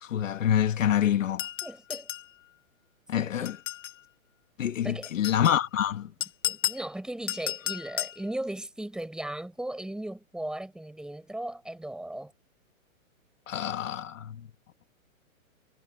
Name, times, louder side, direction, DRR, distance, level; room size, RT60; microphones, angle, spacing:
voice 1, 0.0-1.5 3.1-3.6 4.6-6.1 13.5-14.5, left 10 dB, 65° left, 1.9 m, -26 dB
sound 1, 1.4-2.3 3.4-4.0 5.0-5.6 6.2-6.8 7.3-8.2, left 12 dB, 15° left, 0.5 m, -33 dB
voice 2, 1.6-2.1 3.1-3.6 4.8-5.1 6.4-12.3, right 1 dB, ahead, 5.7 m, -37 dB
hypercardioid pair, 160°, 42 cm